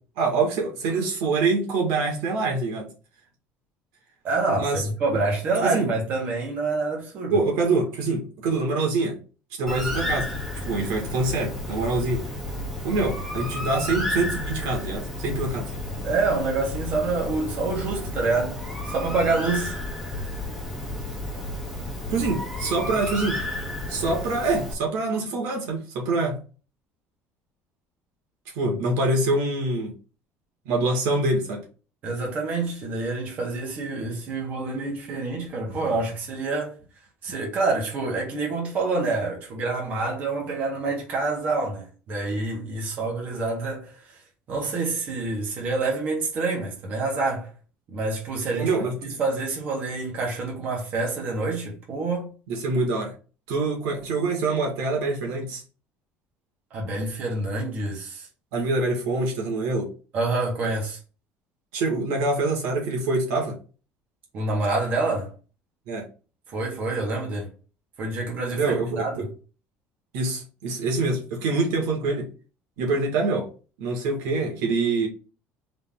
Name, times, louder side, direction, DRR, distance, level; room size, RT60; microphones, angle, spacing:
voice 1, 0.2-2.9 4.6-4.8 5.6-5.9 7.3-9.2 9.6-12.3 12.8-15.7 22.1-23.4 23.9-26.4 28.6-29.9 30.7-31.6 48.6-49.2 52.5-53.1 53.5-55.6 58.5-59.9 61.7-63.6 65.9-66.1 68.6-69.3 70.1-72.3 72.8-73.5 73.8-75.1, right 3 dB, 85° right, 1.9 m, -25 dB
voice 2, 4.2-7.4 16.0-18.6 18.8-19.8 28.7-28.8 32.0-36.7 37.2-44.0 44.5-47.5 47.9-48.7 49.2-52.3 56.7-58.3 60.1-61.0 64.3-65.3 66.5-67.5 68.0-69.3, right 3 dB, 40° right, 1.7 m, -27 dB
Bird, 9.7-24.7, left 1 dB, 5° right, 1.4 m, -32 dB
4.1 x 3.3 x 3.7 m
cardioid pair, 160°, 4 cm